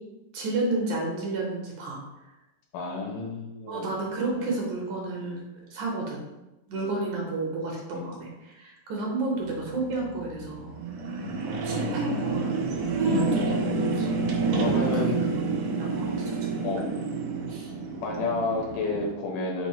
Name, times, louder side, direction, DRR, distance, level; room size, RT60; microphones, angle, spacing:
voice 1, 0.3-2.0 3.7-6.3 6.7-10.8 11.4-12.5 12.8-13.7 14.0-14.1 14.7-15.4 15.8-16.9 17.5-17.7, right 2 dB, 70° right, -2 dB, 2.0 m, -31 dB
voice 2, 2.7-3.9 4.4-4.5 6.7-6.9 7.9-8.1 11.1-11.4 13.1-13.3 14.5-15.2 16.6-16.9 18.0-19.7, left 3 dB, 75° left, -1 dB, 2.3 m, -31 dB
sound 1, 9.4-19.1, right 4 dB, 90° right, 1.4 m, -29 dB
6.2 x 2.1 x 4.1 m, 1.0 s
omnidirectional pair, 3.8 m